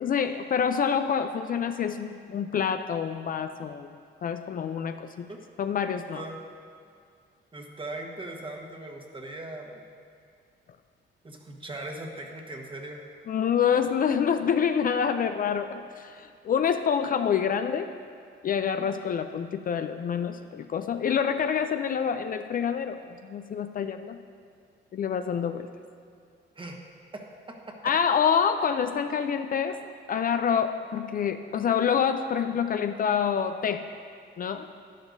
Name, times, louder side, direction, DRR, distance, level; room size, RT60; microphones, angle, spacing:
voice 1, 0.0-3.9 4.2-5.3 5.6-6.2 13.3-17.9 18.4-24.2 24.9-25.7 27.8-29.8 30.1-33.8 34.4-34.7, left 7 dB, 45° left, 8 dB, 0.4 m, -27 dB
voice 2, 5.9-6.4 7.5-9.9 11.2-13.0 26.5-26.8 27.1-27.6, right 2 dB, 25° right, 1 dB, 1.3 m, -39 dB
11.5 x 10.5 x 2.6 m, 2.3 s
cardioid pair, 90°, 20 cm